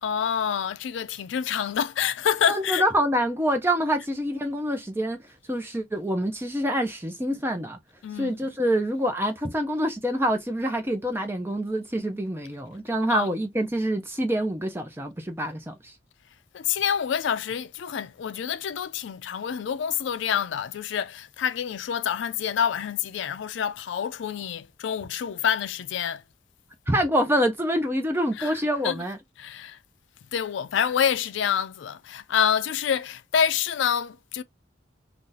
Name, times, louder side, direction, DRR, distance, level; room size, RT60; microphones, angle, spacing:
voice 1, 0.0-2.9 8.0-8.4 13.1-13.3 16.5-26.2 28.4-29.0 29.4-29.8 30.3-34.4, left 8 dB, 70° left, 0.3 m, -27 dB
voice 2, 2.5-5.2 5.5-7.8 8.2-15.9 26.9-29.2, equal, 10° right, 0.6 m, -26 dB
2.6 x 2.5 x 3.8 m
head